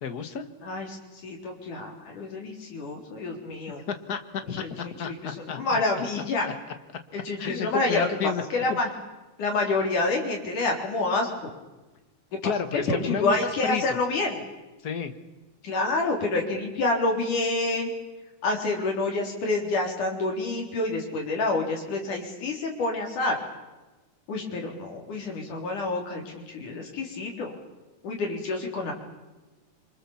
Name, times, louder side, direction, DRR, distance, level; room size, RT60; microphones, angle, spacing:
voice 1, 0.0-0.5 3.9-5.8 7.4-8.8 12.4-13.4 13.6-14.0 14.8-15.1, left 7 dB, 50° left, 9 dB, 1.2 m, -31 dB
voice 2, 1.2-3.8 4.6-6.5 7.1-8.1 8.5-8.9 9.4-11.5 12.4-14.4 15.6-17.9 18.4-23.4 24.3-27.5 28.0-28.9, left 2 dB, 75° left, 1 dB, 5.3 m, -28 dB
26.5 x 24.0 x 7.2 m, 1.1 s
omnidirectional pair, 3.6 m